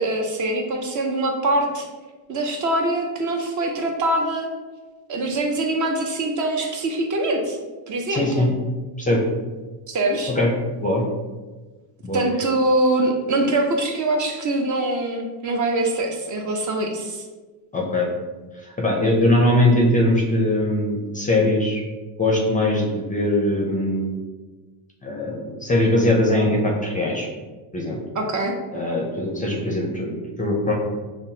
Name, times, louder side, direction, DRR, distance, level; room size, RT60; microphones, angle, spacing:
voice 1, 0.0-1.9 2.3-4.5 5.1-7.6 7.9-8.5 9.9-10.3 12.1-17.2 28.2-28.6, right 2 dB, 40° right, 3 dB, 0.5 m, -23 dB
voice 2, 8.1-8.5 9.0-9.2 10.3-10.5 10.8-11.0 12.0-12.2 17.7-18.1 18.6-21.8 22.2-24.1 25.0-27.3 27.7-28.0 28.7-30.7, left 1 dB, 15° left, -1 dB, 0.4 m, -21 dB
5.7 x 2.1 x 2.7 m, 1.3 s
cardioid pair, 115°, 49 cm